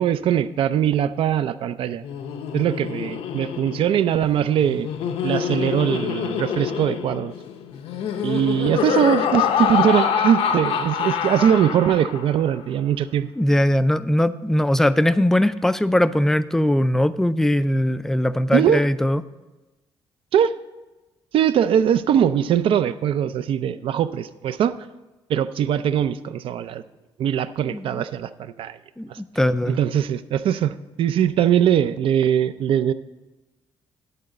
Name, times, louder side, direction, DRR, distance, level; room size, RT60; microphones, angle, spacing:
voice 1, 0.0-2.0 2.5-4.9 5.2-7.3 8.2-13.3 18.5-18.8 20.3-20.5 21.3-24.7 25.3-26.8 27.2-28.8 29.1-29.2 29.7-30.7 31.0-32.9, right 9 dB, 65° right, 13 dB, 0.4 m, -21 dB
Laughter, 1.9-12.4, left 8 dB, 80° left, 0.7 m, -26 dB
voice 2, 13.4-19.2 27.7-28.0 29.0-29.8, left 1 dB, 5° left, 14 dB, 0.3 m, -20 dB
11.0 x 4.0 x 7.6 m, 1.1 s
cardioid pair, 135°, 10 cm